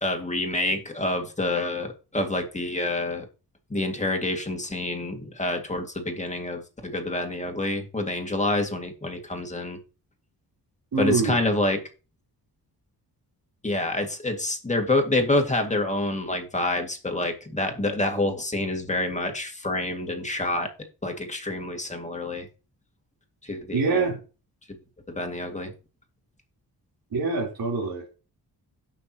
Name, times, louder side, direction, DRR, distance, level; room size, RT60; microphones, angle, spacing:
voice 1, 0.0-3.3 3.7-9.8 11.0-11.8 13.6-20.7 21.0-22.5 23.4-24.1 25.1-25.7, left 2 dB, 15° left, 4 dB, 2.1 m, -27 dB
voice 2, 10.9-11.4 23.7-24.2 27.1-28.0, right 4 dB, 60° right, -2 dB, 3.6 m, -24 dB
16.5 x 6.1 x 2.9 m, 0.34 s
wide cardioid pair, 110°, 40 cm